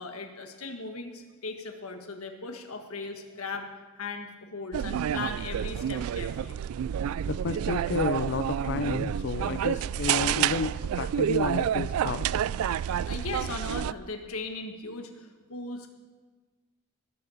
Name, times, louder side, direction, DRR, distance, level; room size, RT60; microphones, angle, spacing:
voice 1, 0.0-3.7 4.0-6.6 13.1-15.9, left 3 dB, 90° left, 5 dB, 1.6 m, -38 dB
sound 1, 4.7-13.9, right 9 dB, 85° right, 0.3 m, -29 dB
voice 2, 7.3-12.3, left 5 dB, 55° left, 12 dB, 0.4 m, -31 dB
20.0 x 6.7 x 7.1 m, 1.3 s
head